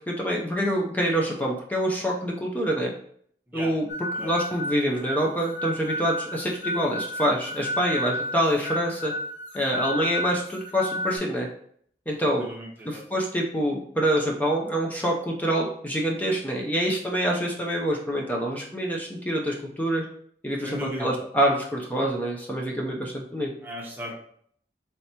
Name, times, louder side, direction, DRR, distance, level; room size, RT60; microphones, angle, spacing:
voice 1, 0.1-2.9 3.5-3.8 4.2-9.1 9.5-11.5 12.1-12.4 12.9-20.0 20.4-23.5, equal, 10° left, -1 dB, 0.5 m, -26 dB
sound 1, 3.9-11.2, equal, 85° left, 0.8 m, -32 dB
voice 2, 12.2-13.0 20.6-21.1 23.6-24.2, right 1 dB, 10° right, -3 dB, 0.9 m, -36 dB
3.3 x 2.8 x 4.2 m, 0.63 s
head